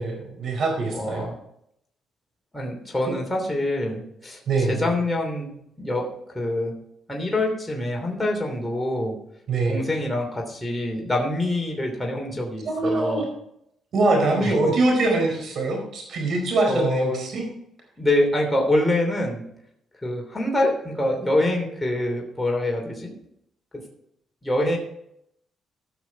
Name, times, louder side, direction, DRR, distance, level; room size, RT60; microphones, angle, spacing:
voice 1, 0.0-1.3 3.1-3.2 4.5-4.9 9.5-9.9 12.6-13.2 13.9-17.4, right 2 dB, 60° right, 2 dB, 4.5 m, -23 dB
voice 2, 0.8-1.4 2.5-6.8 7.1-9.2 9.7-13.2 14.2-14.8 16.7-17.2 18.0-19.4 20.0-23.1 23.7-23.8 24.4-24.8, left 1 dB, 10° left, 0 dB, 3.0 m, -25 dB
15.0 x 6.4 x 4.6 m, 0.75 s
cardioid pair, 90°, 0 cm